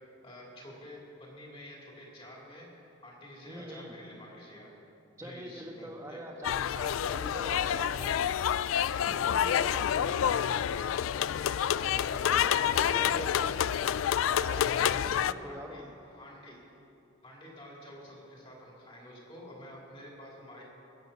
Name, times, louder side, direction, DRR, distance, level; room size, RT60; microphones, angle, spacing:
voice 1, 0.2-2.7 3.0-4.7 5.2-6.2 7.6-7.7 11.9-13.2 14.9-16.6 17.2-20.6, left 1 dB, 25° left, -3 dB, 2.8 m, -49 dB
voice 2, 3.5-4.0 5.2-8.2 9.1-10.5 11.6-13.6 14.4-15.9, equal, 15° right, 1 dB, 1.3 m, -44 dB
sound 1, 6.4-15.3, left 9 dB, 85° left, 0.3 m, -28 dB
20.0 x 8.1 x 5.4 m, 2.8 s
head